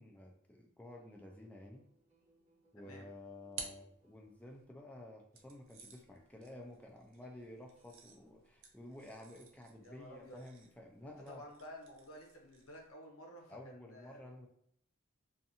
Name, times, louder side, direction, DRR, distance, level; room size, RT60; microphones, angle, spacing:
voice 1, 0.0-1.8 2.7-11.4 13.5-14.5, left 1 dB, 5° left, 1 dB, 0.3 m, -52 dB
sound 1, 0.8-10.1, right 2 dB, 30° right, 0.8 m, -74 dB
voice 2, 2.8-3.1 9.8-10.4 11.0-14.2, equal, 85° left, 1 dB, 0.7 m, -53 dB
sound 2, 2.8-4.6 5.3-12.9, right 5 dB, 65° right, 0.5 m, -54 dB
2.5 x 2.4 x 2.7 m, 0.69 s
head